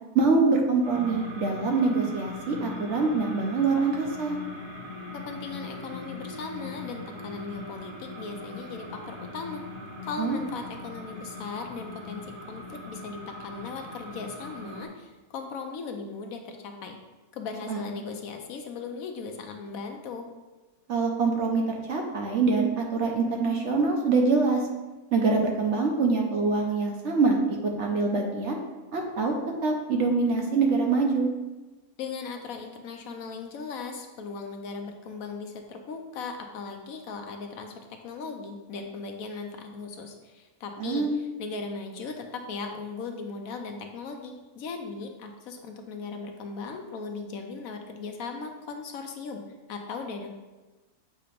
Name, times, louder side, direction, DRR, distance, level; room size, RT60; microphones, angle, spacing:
voice 1, 0.1-4.4 10.2-10.4 17.7-17.8 20.9-24.6 25.1-27.4 27.6-28.6 28.9-29.3 29.6-31.3 40.8-41.1, right 4 dB, 60° right, 1 dB, 0.9 m, -24 dB
sound 1, 0.8-14.9, left 2 dB, 80° right, 2.1 m, -40 dB
voice 2, 5.1-9.6 10.0-17.0 17.3-20.3 32.0-49.4 49.7-50.4, left 4 dB, 70° left, 4 dB, 1.0 m, -38 dB
7.5 x 2.9 x 5.0 m, 1.2 s
omnidirectional pair, 1.7 m